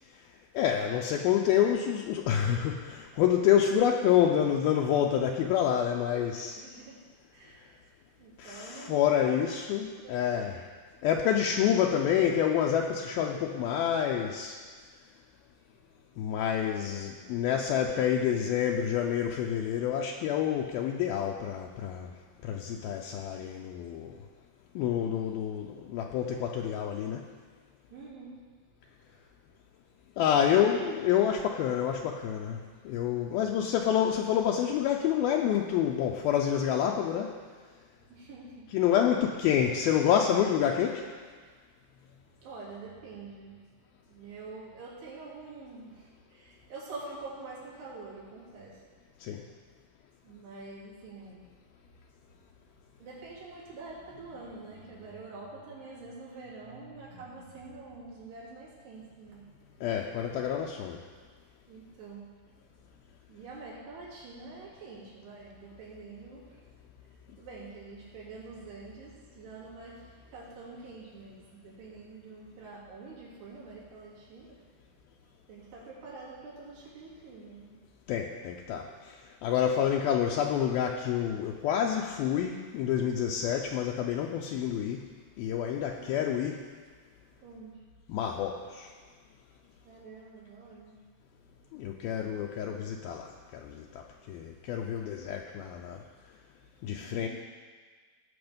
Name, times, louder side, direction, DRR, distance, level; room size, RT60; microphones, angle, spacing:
voice 1, 0.5-6.6 8.4-10.7 11.0-14.6 16.2-22.2 22.4-24.2 24.8-27.2 30.2-37.4 38.7-41.1 49.2-49.4 59.8-61.1 78.1-85.1 85.4-86.6 88.1-88.9 91.7-96.0 96.8-97.3, left 9 dB, 80° left, 1 dB, 2.3 m, -28 dB
voice 2, 6.6-7.0 7.3-7.8 8.2-9.4 10.0-10.5 27.9-28.5 30.3-30.7 38.1-38.8 42.4-43.6 44.1-48.9 50.2-51.5 53.0-59.5 61.7-62.3 63.3-66.6 67.0-74.6 75.5-77.8 86.0-86.1 87.4-88.0 89.8-91.0 96.9-97.3, right 3 dB, 75° right, -7 dB, 5.1 m, -46 dB
17.5 x 7.1 x 5.2 m, 1.5 s
omnidirectional pair, 4.8 m